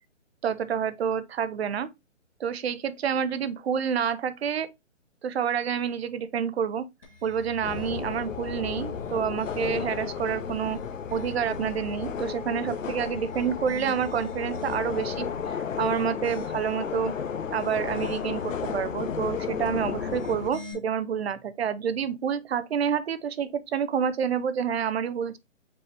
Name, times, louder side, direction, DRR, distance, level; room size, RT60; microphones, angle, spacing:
voice 1, 0.4-1.9 2.4-4.7 5.2-6.8 7.2-10.8 11.1-17.1 17.5-25.4, right 7 dB, 55° right, 0.6 m, -28 dB
sound 1, 7.0-8.3 8.9-10.0 10.5-11.6 13.1-15.2 15.7-16.9 17.4-18.5 19.9-20.7, left 2 dB, 25° left, 0.9 m, -46 dB
sound 2, 7.6-20.5, left 7 dB, 75° left, 0.8 m, -33 dB
5.2 x 2.8 x 3.2 m
hypercardioid pair, 155°, 38 cm